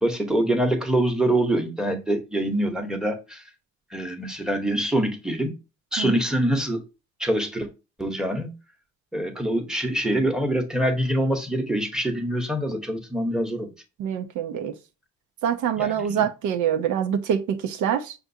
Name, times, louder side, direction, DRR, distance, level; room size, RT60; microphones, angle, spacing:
voice 1, 0.0-3.4 3.9-5.5 5.9-6.8 7.2-7.7 8.0-8.5 9.1-13.7 15.8-16.3, right 1 dB, ahead, 0.9 m, -25 dB
voice 2, 14.0-14.7 15.4-18.1, right 8 dB, 75° right, 0.6 m, -25 dB
5.8 x 2.5 x 2.6 m
cardioid pair, 90°, 30 cm